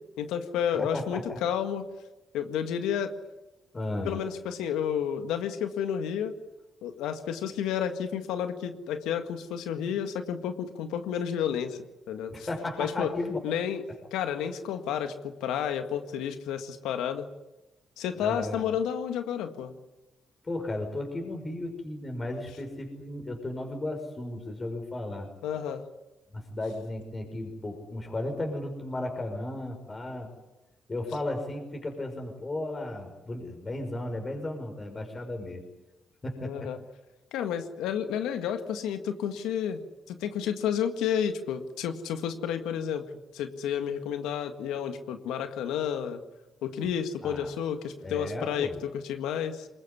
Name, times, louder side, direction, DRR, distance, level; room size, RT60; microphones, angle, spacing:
voice 1, 0.2-1.8 2.3-3.1 4.1-6.3 6.8-12.5 12.8-13.1 13.4-13.8 14.1-17.3 18.0-19.7 25.4-25.8 36.4-36.8 37.3-39.8 40.1-43.0 43.3-46.2 46.6-48.7 48.9-49.7, left 8 dB, 90° left, 8 dB, 1.8 m, -31 dB
voice 2, 0.8-1.4 3.7-4.2 12.3-13.4 18.1-18.7 20.4-25.3 26.3-30.3 30.9-35.6 36.2-36.7 46.8-46.9 47.2-47.5 48.0-48.8, left 2 dB, 35° left, 3 dB, 5.7 m, -34 dB
23.0 x 21.0 x 9.9 m, 1.0 s
supercardioid pair, 60°, 0 cm